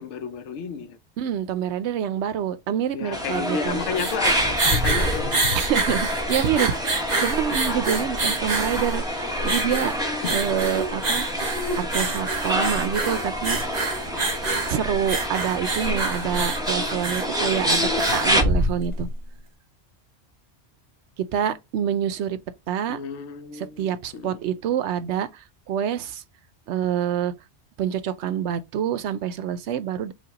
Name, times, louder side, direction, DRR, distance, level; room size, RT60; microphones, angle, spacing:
voice 1, 0.0-1.0 2.9-5.5 10.2-10.5 22.9-24.4, left 6 dB, 85° left, 1.0 m, -32 dB
voice 2, 1.2-3.8 5.6-9.9 10.3-11.3 11.8-13.6 14.7-19.1 21.3-22.4 22.7-23.0 23.5-26.2 26.7-27.3 27.8-30.1, right 9 dB, 80° right, 0.9 m, -26 dB
sound 1, 3.1-18.4, equal, 5° right, 0.9 m, -28 dB
sound 2, 3.7-19.1, right 2 dB, 40° right, 1.0 m, -26 dB
5.1 x 2.4 x 4.0 m
omnidirectional pair, 1.2 m